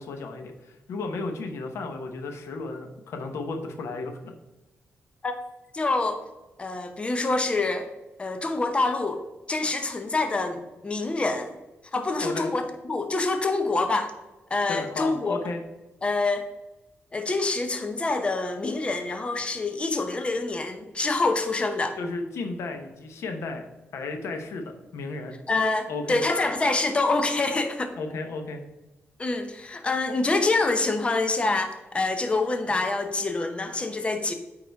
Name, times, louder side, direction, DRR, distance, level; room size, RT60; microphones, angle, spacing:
voice 1, 0.0-4.3 12.2-12.5 14.7-15.6 22.0-23.7 23.9-25.3 25.9-26.2 28.0-28.6, left 3 dB, 90° left, 5 dB, 1.0 m, -34 dB
voice 2, 5.7-6.2 6.6-7.9 8.2-9.2 9.5-11.5 11.9-14.1 14.5-15.4 16.0-16.4 17.1-22.0 25.5-27.9 29.2-34.3, left 3 dB, 25° left, 6 dB, 0.8 m, -26 dB
8.3 x 4.9 x 3.5 m, 1.0 s
wide cardioid pair, 120°, 5 cm